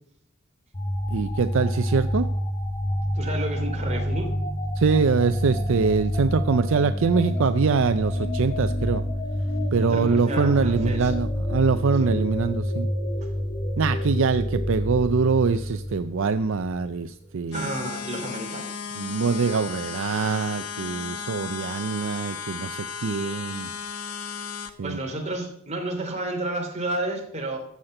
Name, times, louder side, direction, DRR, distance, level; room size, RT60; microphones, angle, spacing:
sound 1, 0.7-17.1, equal, 25° left, 2.1 m, -28 dB
voice 1, 1.1-2.3 4.8-9.0 9.7-12.9 13.8-17.7 19.0-23.7 24.8-25.0, right 5 dB, 65° right, 11 dB, 0.5 m, -24 dB
voice 2, 3.1-4.3 9.8-11.1 12.0-12.1 17.5-18.9 24.0-27.6, right 1 dB, 35° right, 3 dB, 2.7 m, -32 dB
sound 2, 17.5-24.7, left 6 dB, 85° left, 1.0 m, -35 dB
14.5 x 5.8 x 7.7 m, 0.70 s
head